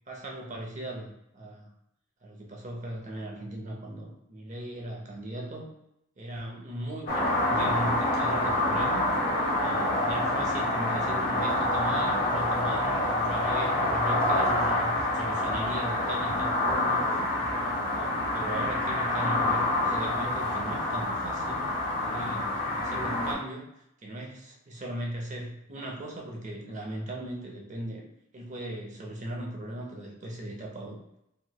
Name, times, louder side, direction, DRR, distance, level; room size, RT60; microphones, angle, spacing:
voice 1, 0.1-1.7 2.2-5.7 6.2-9.1 9.6-21.7 22.0-28.1 28.3-31.0, right 1 dB, 40° right, 0 dB, 0.6 m, -38 dB
sound 1, 7.1-23.3, left 1 dB, 50° left, 0.7 m, -27 dB
3.1 x 3.0 x 2.2 m, 0.79 s
head